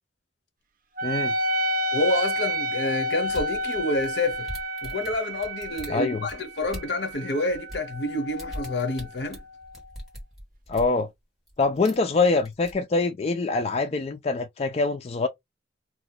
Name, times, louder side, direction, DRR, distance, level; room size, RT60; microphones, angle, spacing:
voice 1, 1.0-1.3 5.9-6.3 10.7-11.1 11.6-15.3, left 3 dB, 35° left, 0.4 m, -24 dB
Wind instrument woodwind instrument, 1.0-9.9, equal, 50° right, 0.6 m, -31 dB
voice 2, 1.9-4.5 4.8-9.4, left 2 dB, 70° left, 0.8 m, -28 dB
sound 1, 3.3-7.1 7.5-11.0 11.5-12.1 12.4-12.7, equal, ahead, 1.5 m, -41 dB
2.8 x 2.1 x 3.9 m
head